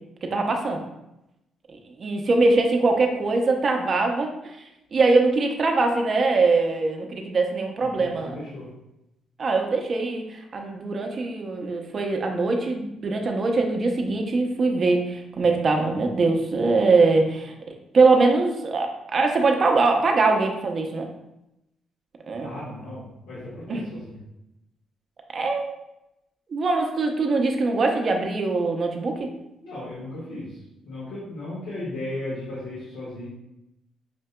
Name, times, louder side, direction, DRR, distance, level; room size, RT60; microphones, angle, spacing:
voice 1, 0.2-0.8 2.0-4.6 4.9-8.4 9.4-21.1 22.3-22.5 23.7-23.8 25.3-25.8 26.5-29.3, right 3 dB, 45° right, 3 dB, 0.6 m, -22 dB
voice 2, 7.8-8.7 22.4-24.2 29.6-30.6 30.8-33.3, left 1 dB, 90° left, -10 dB, 1.4 m, -36 dB
5.8 x 2.7 x 2.2 m, 0.89 s
cardioid pair, 90°, 0 cm